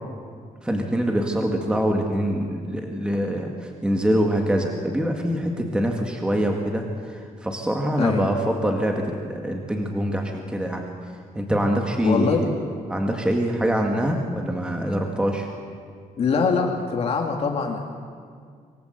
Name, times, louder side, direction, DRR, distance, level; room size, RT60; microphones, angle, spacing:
voice 1, 0.6-10.9 11.3-12.5 12.9-15.5, equal, 5° right, 2 dB, 1.9 m, -24 dB
voice 2, 12.0-12.4 16.2-17.8, left 5 dB, 45° left, 1 dB, 2.2 m, -23 dB
26.5 x 19.0 x 8.1 m, 2.1 s
cardioid pair, 170°, 14 cm